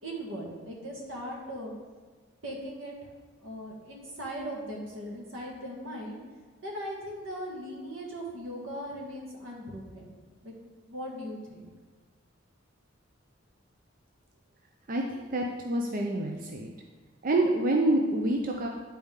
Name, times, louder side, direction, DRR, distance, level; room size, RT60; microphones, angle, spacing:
voice 1, 0.0-1.7 2.4-2.9 3.4-6.2 6.6-10.1 10.4-10.6 10.9-11.7, equal, 90° right, -2 dB, 1.8 m, -39 dB
voice 2, 15.3-16.7 17.2-18.7, right 1 dB, 45° right, 1 dB, 0.6 m, -27 dB
10.5 x 4.2 x 3.7 m, 1.4 s
head